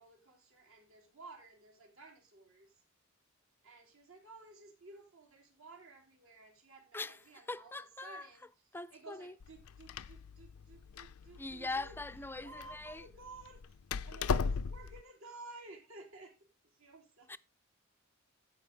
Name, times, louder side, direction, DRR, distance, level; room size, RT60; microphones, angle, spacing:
voice 1, 0.0-2.8 3.6-7.7 8.0-8.5 8.9-12.0 12.4-13.8 14.0-17.3, right 3 dB, 70° right, 3.8 m, -54 dB
voice 2, 7.5-8.3 8.7-9.3 11.4-13.1 17.3-17.4, left 3 dB, 10° left, 0.4 m, -41 dB
Door, 9.4-15.0, left 5 dB, 80° left, 0.5 m, -38 dB
15.5 x 5.5 x 3.8 m
head